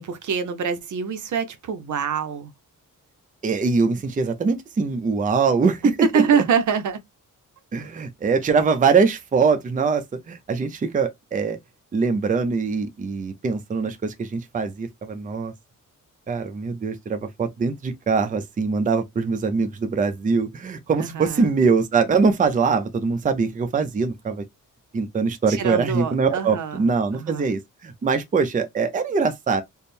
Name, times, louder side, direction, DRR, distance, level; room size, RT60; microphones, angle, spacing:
voice 1, 0.0-2.5 6.1-7.0 21.0-21.5 25.5-26.9 27.1-27.5, right 7 dB, 65° right, 0.7 m, -25 dB
voice 2, 3.4-5.9 7.7-11.6 11.9-15.5 16.3-24.4 24.9-29.6, right 5 dB, 25° right, 0.5 m, -22 dB
3.5 x 2.0 x 4.2 m
wide cardioid pair, 155°, 33 cm